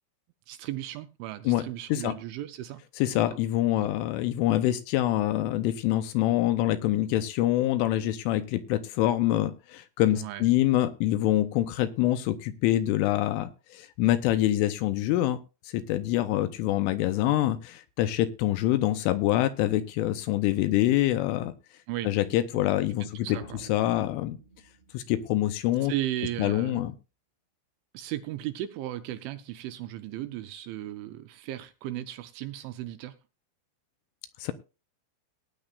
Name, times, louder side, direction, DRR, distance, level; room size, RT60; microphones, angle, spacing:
voice 1, 0.5-2.8 3.3-3.4 3.7-3.9 10.1-10.5 21.9-22.1 22.5-22.7 23.0-23.6 25.9-26.9 27.9-33.1, right 13 dB, 80° right, 10 dB, 2.8 m, -36 dB
voice 2, 3.0-15.4 15.7-21.5 22.0-23.3 23.7-24.4 24.9-25.9 26.4-26.9 34.4-34.5, left 14 dB, 80° left, 11 dB, 3.1 m, -25 dB
sound 1, 23.3-25.7, right 2 dB, 20° left, 1.5 m, -51 dB
18.5 x 10.0 x 2.5 m, 0.30 s
omnidirectional pair, 5.9 m